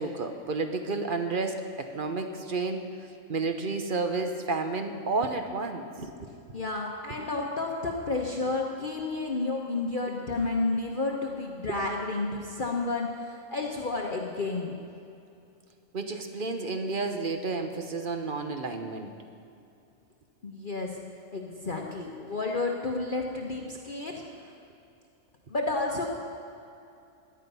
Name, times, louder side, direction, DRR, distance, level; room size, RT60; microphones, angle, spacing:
voice 1, 0.0-2.9 3.3-6.3 11.7-11.8 15.9-19.1, right 3 dB, 40° right, 6 dB, 1.1 m, -31 dB
voice 2, 6.5-14.8 20.4-21.0 21.3-24.2 25.5-26.1, left 3 dB, 40° left, 0 dB, 1.1 m, -31 dB
17.5 x 11.0 x 5.5 m, 2.7 s
omnidirectional pair, 1.5 m